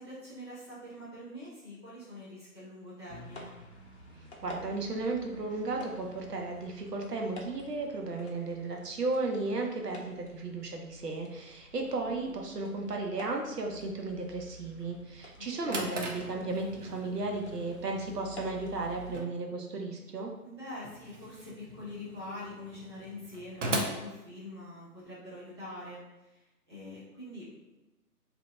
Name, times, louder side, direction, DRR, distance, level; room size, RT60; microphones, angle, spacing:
voice 1, 0.0-3.5 12.2-12.3 15.4-16.0 20.4-27.8, left 1 dB, 20° right, -12 dB, 0.7 m, -45 dB
sound 1, 3.1-19.2, equal, 45° left, 0.5 m, -50 dB
voice 2, 4.4-20.3, right 3 dB, 90° right, 1 dB, 0.8 m, -34 dB
Drawer open or close, 15.3-25.0, right 1 dB, 55° right, 0.5 m, -40 dB
2.8 x 2.2 x 3.2 m, 1.0 s
figure-of-eight pair, 160°, 47 cm